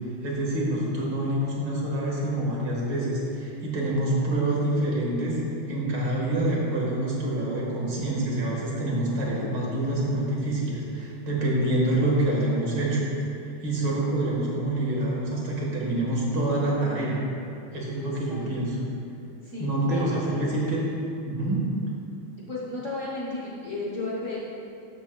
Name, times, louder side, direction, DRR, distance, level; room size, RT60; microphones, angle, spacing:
voice 1, 0.2-5.4 5.7-13.0 13.6-17.2 17.7-18.8 19.6-20.9 21.2-21.7, right 1 dB, 60° right, -4 dB, 2.2 m, -26 dB
voice 2, 18.0-18.5 19.4-20.5 22.5-24.4, left 2 dB, 45° left, -6 dB, 1.1 m, -34 dB
12.5 x 7.4 x 2.3 m, 2.7 s
omnidirectional pair, 2.3 m